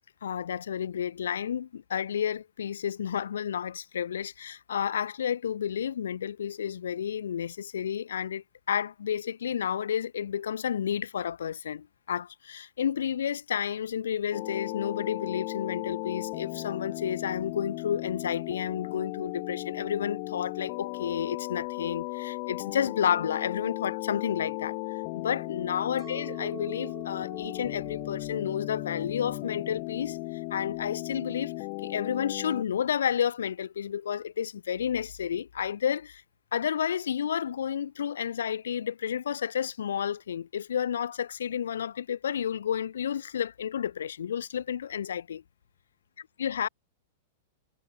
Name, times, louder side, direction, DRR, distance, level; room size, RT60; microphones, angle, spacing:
voice 1, 0.2-24.8 25.1-30.2 30.5-36.2 36.5-45.4 46.4-46.7, left 8 dB, 80° left, 0.7 m, -31 dB
sound 1, 14.3-32.6, left 40 dB or more, 50° left, 2.7 m, -36 dB
Chink clink, 26.0-30.3 30.7-31.3, right 11 dB, 30° right, 4.2 m, -48 dB
hypercardioid pair, 110°, 0 cm